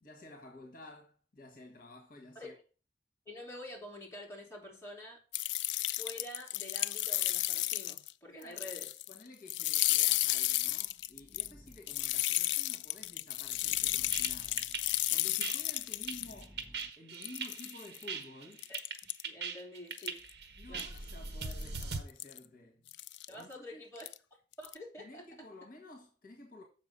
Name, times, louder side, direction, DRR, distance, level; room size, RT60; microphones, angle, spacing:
voice 1, 0.0-2.6 8.3-14.7 15.1-16.6 17.0-18.7 20.6-23.0 23.3-23.8 25.0-26.6, left 2 dB, 55° left, 1.6 m, -52 dB
voice 2, 3.3-5.2 5.8-8.9 18.7-18.8 19.2-20.2 20.7-20.9 23.3-24.1 24.6-25.2, left 1 dB, 15° left, 3.0 m, -47 dB
sound 1, 5.3-8.1 8.4-9.2 9.5-16.3 16.8-16.9 17.2-18.0 18.6-19.2 19.9-20.3 20.8-21.0 21.5-21.8 22.2-22.4 22.9-23.3 24.0-24.2 24.5-24.7, left 16 dB, 85° left, 0.3 m, -33 dB
sound 2, 10.4-16.9, equal, ahead, 0.8 m, -59 dB
sound 3, 14.1-22.0, right 5 dB, 70° right, 1.3 m, -41 dB
7.6 x 5.9 x 5.4 m
head